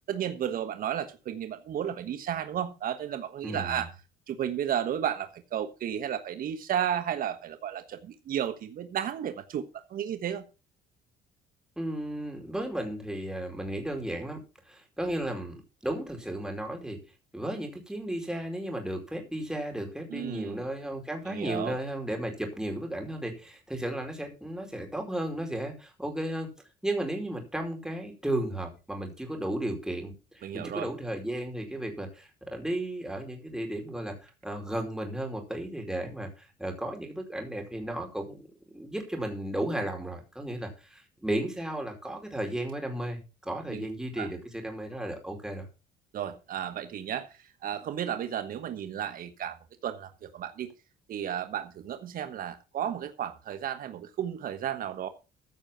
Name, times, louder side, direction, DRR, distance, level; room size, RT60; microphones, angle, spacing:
voice 1, 0.1-3.9 4.3-10.4 20.1-20.6 21.3-21.8 30.4-30.9 43.7-43.9 44.2-44.3 46.1-49.6 49.8-50.7 51.1-55.1, right 9 dB, 55° right, 9 dB, 1.3 m, -33 dB
voice 2, 3.4-3.8 11.8-14.4 14.6-17.0 17.3-26.5 26.8-38.4 38.7-45.7, right 1 dB, 5° right, 2 dB, 4.8 m, -34 dB
15.0 x 6.3 x 5.8 m, 0.31 s
cardioid pair, 110°, 17 cm